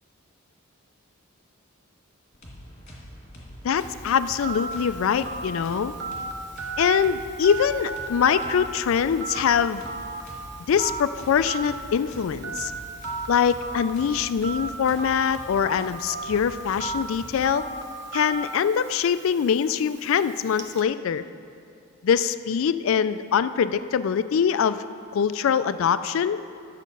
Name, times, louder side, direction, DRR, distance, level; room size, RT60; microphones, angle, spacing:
sound 1, 2.3-17.5, equal, 35° left, 2.3 m, -44 dB
voice 1, 3.6-5.9 6.8-9.8 10.7-12.7 13.3-17.6 18.1-21.3 22.0-24.8 25.1-26.4, left 7 dB, 65° left, 13 dB, 0.3 m, -23 dB
Telephone, 3.8-20.8, right 3 dB, 50° right, 0.9 m, -36 dB
11.0 x 7.2 x 5.4 m, 2.6 s
head